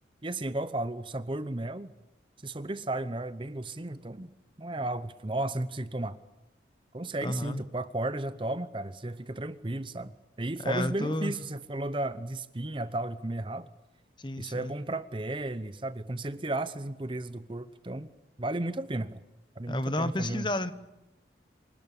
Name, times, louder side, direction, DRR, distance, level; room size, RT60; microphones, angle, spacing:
voice 1, 0.2-1.9 2.4-4.3 4.6-6.2 6.9-13.7 14.4-18.1 18.4-19.2 19.6-20.5, right 2 dB, 25° right, 0.8 m, -34 dB
voice 2, 7.2-7.6 10.6-11.3 14.2-14.7 19.7-20.7, left 1 dB, 25° left, 1.1 m, -31 dB
26.0 x 19.5 x 8.4 m
head